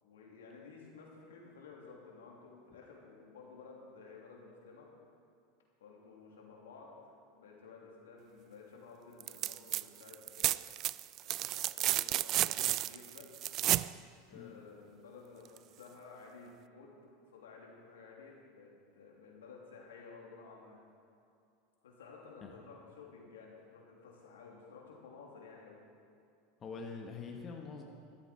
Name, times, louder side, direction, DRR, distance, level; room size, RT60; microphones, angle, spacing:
voice 1, 0.0-4.9 5.8-10.7 11.2-13.3 14.2-20.8 21.8-25.8, left 4 dB, 85° left, -2 dB, 3.1 m, -54 dB
sound 1, 9.2-9.8 10.1-13.9 15.6-15.7, right 14 dB, 45° right, 0.3 m, -32 dB
voice 2, 26.6-27.8, left 5 dB, 30° left, 1 dB, 1.5 m, -44 dB
13.5 x 13.0 x 4.5 m, 2.4 s
hypercardioid pair, 100°, 0 cm